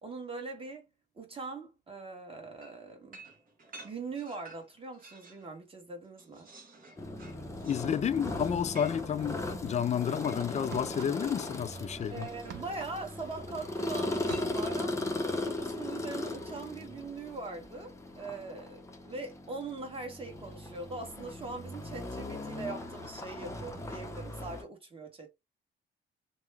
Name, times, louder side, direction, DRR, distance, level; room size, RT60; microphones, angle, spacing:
voice 1, 0.0-0.8 1.2-3.2 3.8-6.5 12.1-15.0 15.4-25.3, right 3 dB, 25° right, 1.4 m, -41 dB
sound 1, 2.6-5.5 5.9-10.9 12.0-12.6 13.9-14.9, right 2 dB, 45° right, 1.3 m, -53 dB
sound 2, 7.0-24.6, left 2 dB, 15° left, 0.7 m, -38 dB
voice 2, 7.6-12.3, left 8 dB, 35° left, 0.4 m, -31 dB
sound 3, 10.7-11.5 11.8-13.9 14.1-14.9, right 10 dB, 70° right, 0.5 m, -48 dB
3.0 x 2.2 x 3.3 m
cardioid pair, 90°, 20 cm